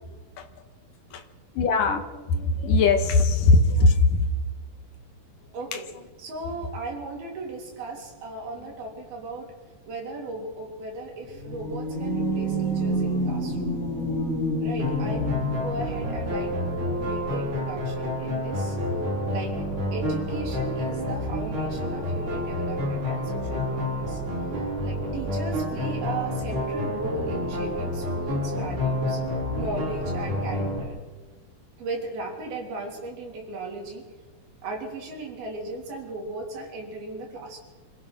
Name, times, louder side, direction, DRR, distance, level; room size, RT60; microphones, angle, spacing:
voice 1, 1.6-2.0 2.3-4.2 5.7-5.8, left 3 dB, 65° left, 6 dB, 2.8 m, -20 dB
voice 2, 5.5-5.9 6.2-9.5 9.9-13.7 14.6-18.8 19.3-19.5 19.9-24.2 24.5-29.2 29.6-31.0 31.8-34.1 34.6-37.6, right 2 dB, 65° right, 0 dB, 5.3 m, -36 dB
sound 1, 11.2-16.0, equal, 20° right, 4.8 m, -28 dB
sound 2, 14.8-30.8, left 1 dB, 50° right, 5.9 m, -29 dB
26.0 x 16.5 x 6.2 m, 1.3 s
omnidirectional pair, 4.6 m